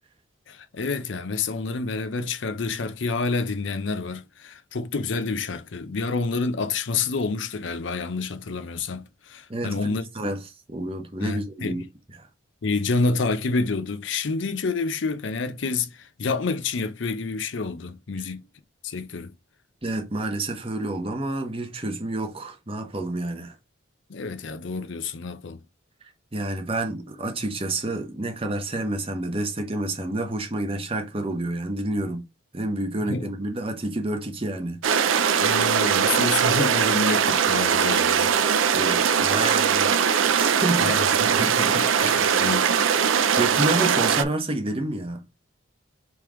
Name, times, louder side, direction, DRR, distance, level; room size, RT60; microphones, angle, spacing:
voice 1, 0.5-10.0 11.2-11.8 12.6-18.4 18.8-19.3 24.1-25.6 32.9-33.3 35.3-38.3 40.8-42.7, left 4 dB, 70° left, 0.6 m, -28 dB
voice 2, 9.5-10.4 10.7-11.8 12.2-12.3 19.8-23.5 26.3-32.3 32.5-35.2 38.7-41.0 43.4-45.2, right 2 dB, 30° right, 0.9 m, -29 dB
sound 1, 34.8-44.2, right 7 dB, 85° right, 0.5 m, -21 dB
3.7 x 3.0 x 4.8 m
head